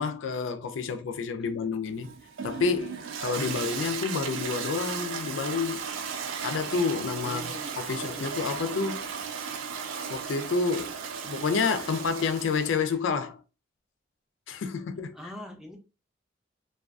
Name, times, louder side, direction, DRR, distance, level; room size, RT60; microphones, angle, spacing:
voice 1, 0.0-2.1 2.4-5.8 6.4-7.4 7.8-9.0 10.1-13.4 14.5-15.2, left 5 dB, 85° left, 0.4 m, -29 dB
Toilet flush, 1.9-12.9, right 6 dB, 80° right, 0.4 m, -36 dB
voice 2, 7.2-8.3 15.1-15.8, left 1 dB, 5° right, 0.4 m, -42 dB
2.4 x 2.3 x 2.3 m
head